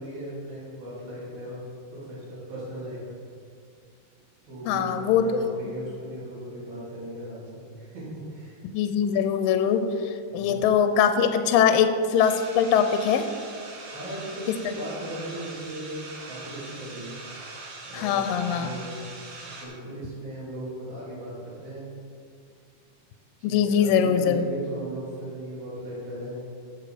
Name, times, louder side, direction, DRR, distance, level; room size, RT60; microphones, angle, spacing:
voice 1, 0.0-1.6 1.9-3.2 4.4-8.6 10.3-10.6 13.9-16.0 16.3-17.1 17.8-18.2 18.5-19.1 19.4-21.9 23.4-26.4, right 1 dB, 85° right, -10 dB, 5.2 m, -37 dB
voice 2, 4.7-5.3 8.7-13.3 14.5-14.6 17.9-18.7 23.4-24.5, left 7 dB, 80° left, 8 dB, 2.2 m, -22 dB
sound 1, 12.2-19.6, right 3 dB, 60° right, 2.8 m, -42 dB
13.0 x 7.2 x 5.0 m, 2.3 s
omnidirectional pair, 4.2 m